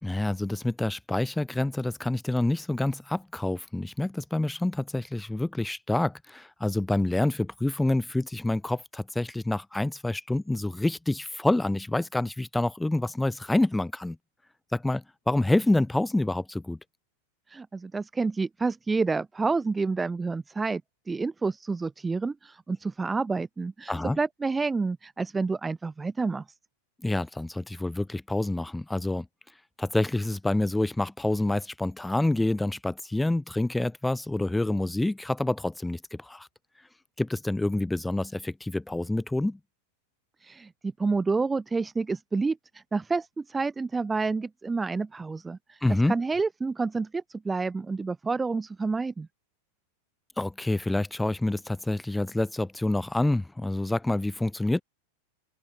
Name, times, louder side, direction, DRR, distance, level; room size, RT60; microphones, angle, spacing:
voice 1, 0.0-14.2 14.7-16.8 23.9-24.2 27.0-29.3 29.8-36.5 37.2-39.6 45.8-46.1 50.4-54.8, left 2 dB, 5° left, 2.0 m, -27 dB
voice 2, 17.5-20.8 21.1-26.4 40.4-42.6 42.9-45.8 46.1-49.3, right 4 dB, 10° right, 1.7 m, -29 dB
supercardioid pair, 125°, 0 cm